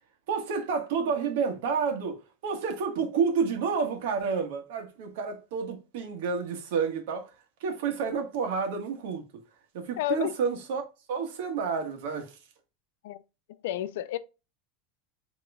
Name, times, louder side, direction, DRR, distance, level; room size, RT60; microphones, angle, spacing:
voice 1, 0.3-7.3 7.6-9.2 9.7-10.8 11.1-12.4, right 5 dB, 70° right, 1.4 m, -30 dB
voice 2, 10.0-10.3 13.0-13.2 13.6-14.2, left 12 dB, 75° left, 0.4 m, -30 dB
7.4 x 3.0 x 2.3 m
supercardioid pair, 170°, 0 cm